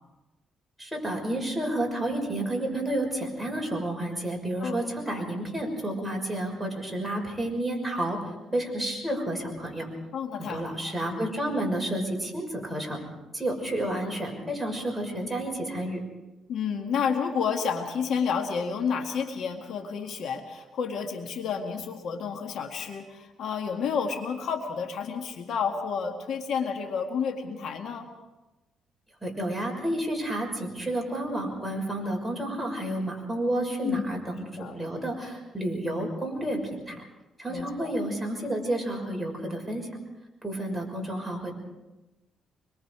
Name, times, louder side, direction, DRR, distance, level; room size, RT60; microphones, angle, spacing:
voice 1, 0.8-9.9 10.4-13.0 13.3-16.0 29.2-37.0 37.4-39.9 40.4-41.5, right 1 dB, ahead, 0 dB, 6.2 m, -30 dB
voice 2, 10.1-10.9 16.5-28.1 33.8-34.0 34.6-34.8 37.5-37.9, left 6 dB, 70° left, 4 dB, 2.0 m, -30 dB
25.5 x 22.5 x 4.8 m, 1.1 s
cardioid pair, 90°, 0 cm